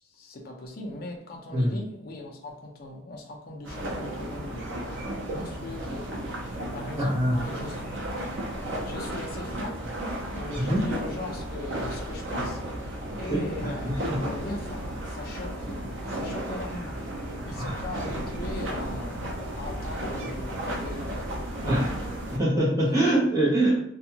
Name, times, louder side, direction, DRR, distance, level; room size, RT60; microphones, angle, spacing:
voice 1, 0.0-8.3 8.8-9.9 10.3-19.3 19.6-21.4 22.8-23.1, left 1 dB, 50° left, 0.5 m, -40 dB
sound 1, 3.6-22.4, right 1 dB, 80° right, 0.6 m, -34 dB
voice 2, 7.0-7.4 10.7-10.8 13.3-14.2 17.6-17.8 21.6-23.8, right 1 dB, 20° right, 0.9 m, -24 dB
2.6 x 2.3 x 2.8 m
head